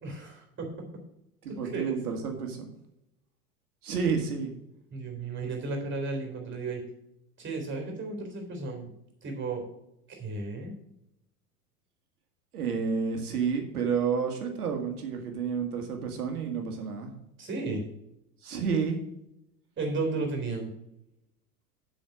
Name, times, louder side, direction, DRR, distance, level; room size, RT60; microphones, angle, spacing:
voice 1, 0.0-0.7 1.5-2.0 4.9-6.8 7.4-8.9 9.2-9.6 10.1-10.7 17.4-17.8 19.8-20.7, right 3 dB, 25° right, 3 dB, 3.7 m, -34 dB
voice 2, 1.4-2.7 3.8-4.5 12.5-17.1 18.4-19.0, right 6 dB, 75° right, 4 dB, 2.1 m, -30 dB
7.8 x 6.3 x 6.0 m, 0.82 s
figure-of-eight pair, 85°, 45 cm